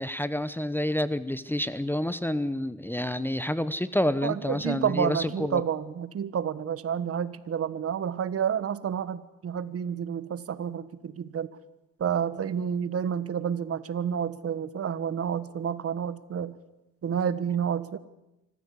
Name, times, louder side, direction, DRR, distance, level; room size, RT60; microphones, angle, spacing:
voice 1, 0.0-5.6, left 1 dB, 5° left, 14 dB, 0.9 m, -28 dB
voice 2, 4.2-11.5 12.0-16.6 17.0-18.0, right 8 dB, 50° right, 15 dB, 1.4 m, -29 dB
25.0 x 14.5 x 8.3 m, 0.95 s
cardioid pair, 90°, 30 cm